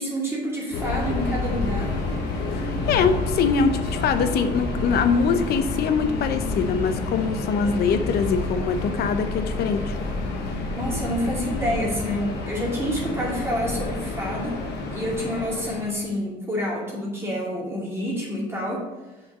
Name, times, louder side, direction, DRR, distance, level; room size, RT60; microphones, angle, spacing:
voice 1, 0.0-1.9 10.7-14.6 14.9-18.8, equal, 15° right, -5 dB, 2.5 m, -28 dB
Subway metro underground, 0.7-16.0, left 3 dB, 85° left, 1.4 m, -29 dB
voice 2, 2.5-10.0, left 5 dB, 70° left, 9 dB, 0.8 m, -23 dB
5.9 x 5.8 x 5.5 m, 1.1 s
cardioid pair, 110°, 17 cm